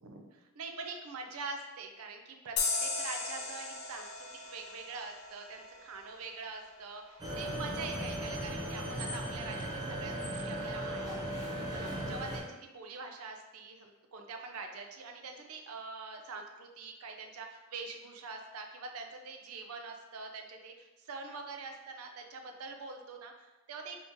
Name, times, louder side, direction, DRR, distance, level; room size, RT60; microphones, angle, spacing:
voice 1, 0.0-4.1 4.5-24.0, right 4 dB, 80° right, 4 dB, 0.5 m, -44 dB
sound 1, 2.6-5.9, left 4 dB, 90° left, 0.6 m, -36 dB
sound 2, 7.2-12.4, right 1 dB, 20° right, 0.6 m, -37 dB
2.9 x 2.7 x 3.5 m, 1.1 s
head